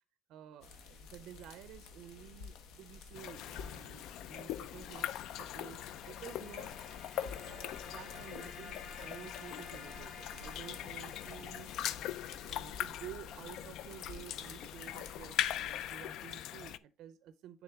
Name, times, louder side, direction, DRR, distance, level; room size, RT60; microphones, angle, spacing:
voice 1, 0.3-6.8 7.1-11.7 12.5-17.6, right 11 dB, 70° right, 0.5 m, -52 dB
sound 1, 0.6-15.9, left 5 dB, 80° left, 1.0 m, -52 dB
sound 2, 3.2-16.8, left 11 dB, 60° left, 0.3 m, -41 dB
sound 3, 5.4-13.1, left 6 dB, 45° left, 1.5 m, -52 dB
9.8 x 3.7 x 3.4 m
cardioid pair, 175°, 0 cm